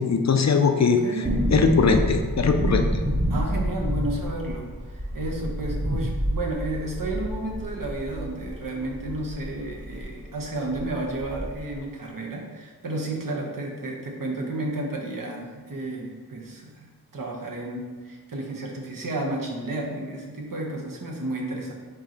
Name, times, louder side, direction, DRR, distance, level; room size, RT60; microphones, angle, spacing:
voice 1, 0.0-1.0 1.5-2.8, left 5 dB, 50° left, 5 dB, 0.5 m, -20 dB
voice 2, 0.8-1.5 3.3-4.7 4.9-21.7, right 2 dB, 65° right, -1 dB, 0.9 m, -32 dB
sound 1, 1.2-10.1 10.3-10.4 10.7-11.7 12.0-12.1, equal, 20° right, 0.8 m, -28 dB
4.4 x 3.2 x 3.8 m, 1.4 s
wide cardioid pair, 65°, 35 cm